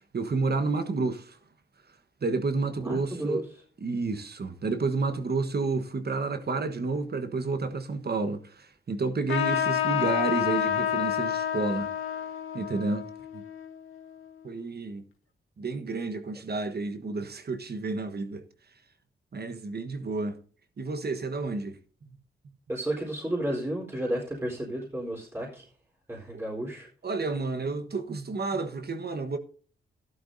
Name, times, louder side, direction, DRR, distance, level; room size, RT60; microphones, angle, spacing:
voice 1, 0.0-1.4 2.2-3.4 3.8-11.9 12.5-13.1 13.3-13.4 14.4-15.0 15.6-18.4 19.3-20.4 20.8-21.8 22.0-22.1 26.3-26.4 27.0-29.4, right 3 dB, 50° right, 1.3 m, -30 dB
voice 2, 2.8-3.4 22.7-25.6 26.1-26.9, right 1 dB, 10° right, 4.1 m, -32 dB
Trumpet, 9.3-14.3, left 10 dB, 80° left, 1.6 m, -29 dB
13.0 x 11.5 x 2.7 m
cardioid pair, 55°, 21 cm